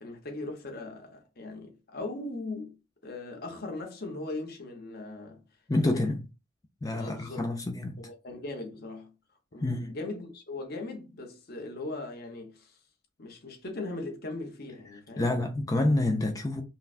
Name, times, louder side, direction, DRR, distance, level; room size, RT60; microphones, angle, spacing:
voice 1, 0.0-2.8 3.0-5.4 5.8-6.1 6.9-7.5 8.0-9.1 9.5-12.8 13.2-15.3, left 2 dB, 50° left, 1.0 m, -39 dB
voice 2, 5.7-6.2 6.8-8.0 9.6-10.0 15.2-16.6, left 2 dB, 20° left, 0.4 m, -27 dB
5.4 x 2.2 x 2.4 m
head